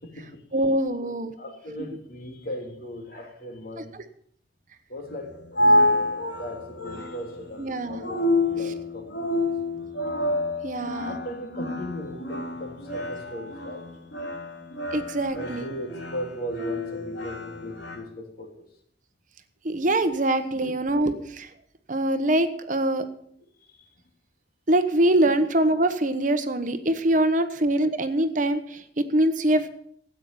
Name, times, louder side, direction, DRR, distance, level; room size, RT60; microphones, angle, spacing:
voice 1, 0.5-1.3 1.8-1.9 3.8-4.0 5.6-5.9 7.6-8.1 8.7-8.8 10.6-11.2 14.9-15.7 19.6-21.5 21.9-23.1 24.7-29.7, right 1 dB, 45° right, 9 dB, 1.0 m, -24 dB
voice 2, 1.4-3.9 4.9-5.3 5.6-9.4 10.8-13.8 15.3-18.5 21.2-21.3 23.7-23.8, equal, 55° left, 2 dB, 3.2 m, -38 dB
sound 1, 5.1-18.0, left 1 dB, 80° left, 3.2 m, -28 dB
13.5 x 8.9 x 6.9 m, 0.66 s
head